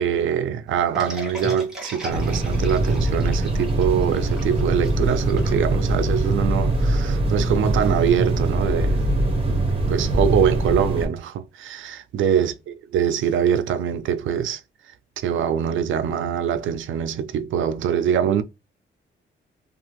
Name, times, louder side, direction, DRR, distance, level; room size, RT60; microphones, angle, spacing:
voice 1, 0.0-9.0 9.5-9.6 9.9-12.5 12.9-14.6 15.2-18.4, right 8 dB, 85° right, 0.5 m, -23 dB
sound 1, 0.9-6.3, equal, 5° right, 1.2 m, -37 dB
sound 2, 2.1-11.1, right 1 dB, 30° right, 0.8 m, -22 dB
2.7 x 2.4 x 2.9 m
wide cardioid pair, 160°, 20 cm